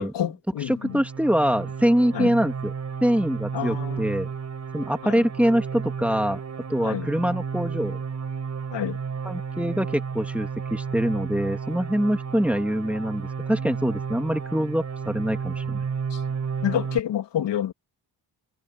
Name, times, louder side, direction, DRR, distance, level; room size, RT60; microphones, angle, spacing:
voice 1, 0.0-1.0 2.1-2.3 3.5-4.1 5.0-5.2 6.8-7.1 8.7-9.0 16.1-16.2 16.6-17.7, left 10 dB, 90° left, 2.6 m, -28 dB
voice 2, 0.7-2.7 3.0-4.3 4.7-6.4 6.7-8.0 9.2-15.8, equal, 5° right, 2.1 m, -24 dB
sound 1, 0.7-17.0, right 6 dB, 40° right, 3.6 m, -32 dB
wide cardioid pair, 155°, 42 cm